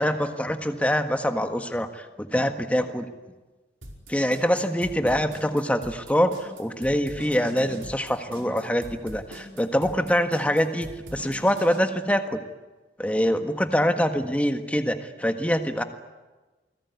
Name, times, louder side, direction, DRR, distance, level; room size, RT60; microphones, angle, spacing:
voice 1, 0.0-3.1 4.1-12.4 13.0-15.8, equal, 5° left, 6 dB, 1.6 m, -24 dB
sound 1, 3.8-11.8, right 1 dB, 90° right, 5.2 m, -42 dB
28.5 x 20.5 x 9.6 m, 1.2 s
head